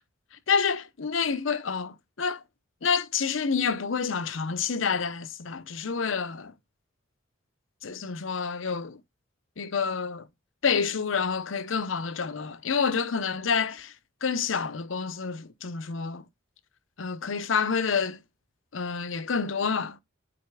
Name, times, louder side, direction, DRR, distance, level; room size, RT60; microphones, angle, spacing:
voice 1, 0.5-2.4 2.8-6.5 7.8-9.0 9.6-10.3 10.6-13.9 14.2-16.2 17.0-18.2 18.7-20.0, left 5 dB, 75° left, 0.8 m, -28 dB
8.0 x 6.5 x 2.2 m
head